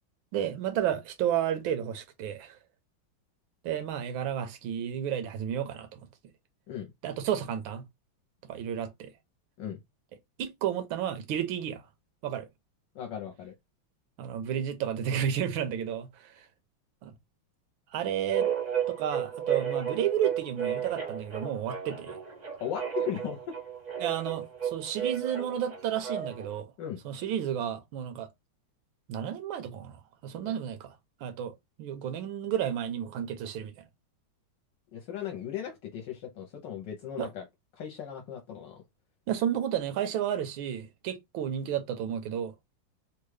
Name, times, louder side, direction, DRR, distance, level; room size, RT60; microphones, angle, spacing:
voice 1, 0.3-2.6 3.6-6.0 7.0-7.8 8.5-9.1 10.4-11.9 12.2-12.5 14.2-16.5 17.0-17.1 17.9-18.5 18.9-22.2 24.0-26.7 27.0-28.3 29.1-31.0 31.2-33.7 37.2-37.3 39.3-42.5, right 9 dB, 80° right, 1.4 m, -32 dB
voice 2, 12.9-13.5 22.6-23.4 26.8-27.0 30.4-30.5 34.9-37.4 37.8-38.8, left 9 dB, 70° left, 1.3 m, -37 dB
sound 1, 18.3-26.5, right 8 dB, 35° right, 0.6 m, -33 dB
3.7 x 2.3 x 3.1 m
omnidirectional pair, 2.2 m